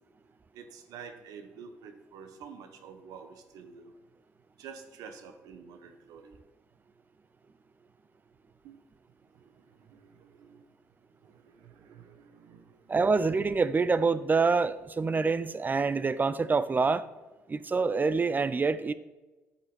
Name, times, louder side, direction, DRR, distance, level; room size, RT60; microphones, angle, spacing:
voice 1, 0.5-3.9 4.6-6.4 8.6-8.8 9.3-9.4 9.9-10.7 11.2-13.1, right 6 dB, 75° right, 8 dB, 1.0 m, -49 dB
voice 2, 12.9-17.1 17.5-18.9, right 4 dB, 30° right, 15 dB, 0.5 m, -26 dB
9.1 x 7.6 x 4.2 m, 1.1 s
supercardioid pair, 60°, 6 cm